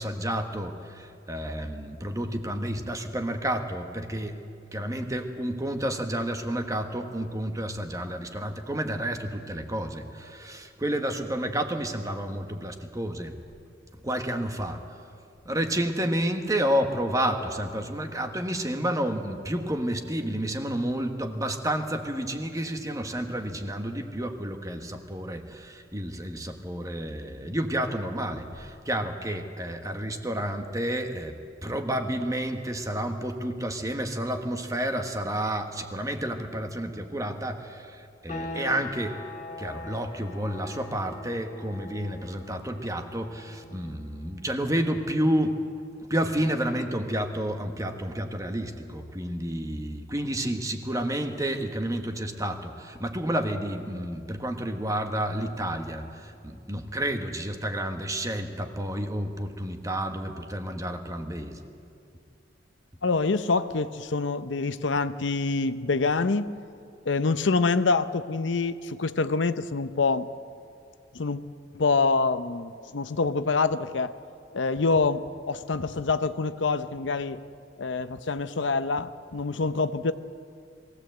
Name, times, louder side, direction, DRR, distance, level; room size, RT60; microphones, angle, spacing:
voice 1, 0.0-4.4 4.7-13.4 14.0-14.8 15.4-31.4 31.6-39.2 39.6-45.6 46.1-61.6, right 1 dB, 20° right, 6 dB, 1.4 m, -30 dB
sound 1, 38.3-48.8, left 2 dB, 35° left, 2.1 m, -44 dB
voice 2, 63.0-66.5 67.1-70.3 71.1-71.4 71.7-74.1 74.5-77.4 77.8-80.1, left 4 dB, 80° left, 12 dB, 0.7 m, -26 dB
21.5 x 16.5 x 7.9 m, 2.4 s
head